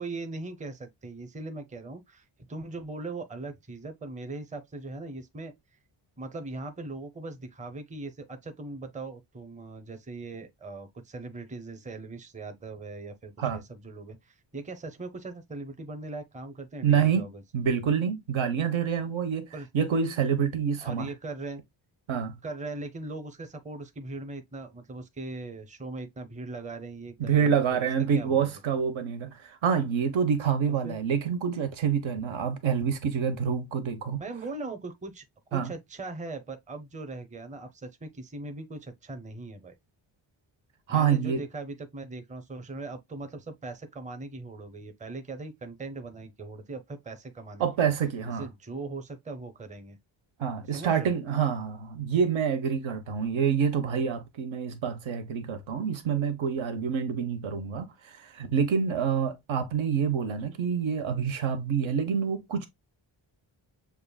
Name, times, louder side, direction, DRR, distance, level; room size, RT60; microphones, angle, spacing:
voice 1, 0.0-5.5 6.2-17.4 19.5-19.7 20.8-21.6 22.4-27.9 28.1-28.5 30.7-31.0 34.2-35.2 35.5-39.7 40.9-47.9 48.4-50.0 50.7-51.1, right 3 dB, 15° right, 0.7 m, -40 dB
voice 2, 16.8-17.3 17.5-19.5 19.7-21.1 22.1-22.4 27.2-34.2 35.5-35.7 40.9-41.4 47.6-48.5 50.4-62.7, right 7 dB, 75° right, 1.0 m, -27 dB
6.7 x 2.5 x 2.2 m
cardioid pair, 95°, 47 cm